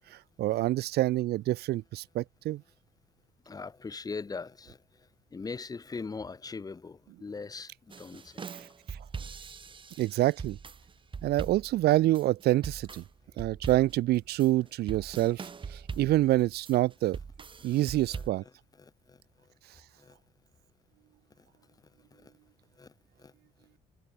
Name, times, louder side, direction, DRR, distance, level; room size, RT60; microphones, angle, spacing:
voice 1, 0.4-2.6 10.0-10.6 11.2-13.0 13.4-17.2 17.6-18.4, right 16 dB, 70° right, 0.9 m, -26 dB
voice 2, 3.4-8.6 15.9-16.0 17.6-18.5 18.8-19.2 20.0-20.2 21.4-21.5 22.1-22.3 22.8-23.3, left 4 dB, 20° left, 1.4 m, -42 dB
sound 1, 7.9-18.3, right 5 dB, 30° right, 2.7 m, -42 dB
cardioid pair, 110°, 17 cm